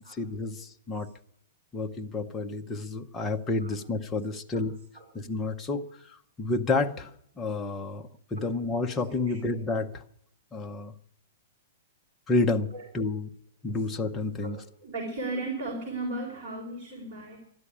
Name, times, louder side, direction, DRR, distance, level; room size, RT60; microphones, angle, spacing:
voice 1, 0.2-1.1 1.7-4.7 5.1-5.9 6.4-7.1 7.4-9.9 10.5-10.9 12.3-12.7 12.9-13.3 13.6-14.6, left 3 dB, 10° left, 0.6 m, -29 dB
voice 2, 4.3-4.6 4.9-5.1 8.4-9.5 12.7-12.8 13.7-13.8 14.4-17.4, right 2 dB, 20° right, 3.9 m, -37 dB
13.0 x 11.0 x 9.9 m
hypercardioid pair, 175°, 0 cm